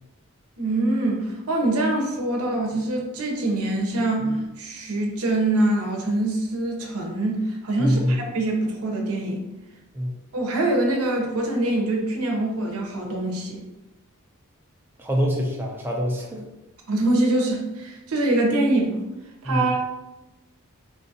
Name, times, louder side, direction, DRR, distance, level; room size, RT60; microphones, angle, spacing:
voice 1, 0.6-9.5 10.3-13.6 16.9-19.1 19.4-19.8, right 2 dB, 85° right, 1 dB, 0.8 m, -24 dB
voice 2, 7.8-8.2 9.9-10.2 15.0-16.4 19.4-19.8, equal, 10° right, -2 dB, 0.4 m, -24 dB
3.7 x 2.4 x 2.7 m, 1.0 s
head